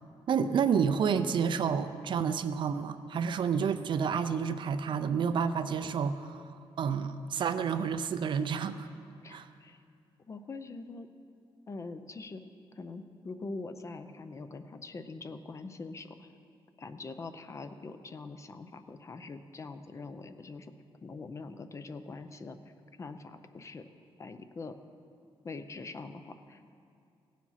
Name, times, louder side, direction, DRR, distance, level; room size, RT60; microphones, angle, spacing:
voice 1, 0.3-6.4 6.8-8.9 9.3-9.5, right 6 dB, 55° right, 11 dB, 0.5 m, -29 dB
voice 2, 9.2-9.8 10.3-11.1 11.7-12.4 12.7-16.3 16.8-20.7 21.0-22.6 23.0-23.9 24.2-24.8 25.4-26.8, left 3 dB, 30° left, 9 dB, 0.5 m, -43 dB
17.0 x 7.3 x 5.7 m, 2.4 s
wide cardioid pair, 155°, 10 cm